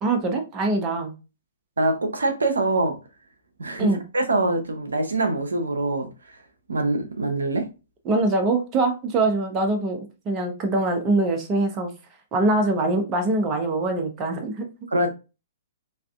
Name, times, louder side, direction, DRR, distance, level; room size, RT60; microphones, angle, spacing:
voice 1, 0.0-1.1 3.8-4.0 8.1-11.9 12.3-14.7, right 2 dB, 25° right, 0.6 m, -23 dB
voice 2, 1.8-3.0 3.6-6.1 6.7-7.7 14.9-15.1, right 2 dB, 70° right, 0.5 m, -24 dB
3.3 x 2.4 x 2.3 m
figure-of-eight pair, 115°, 0 cm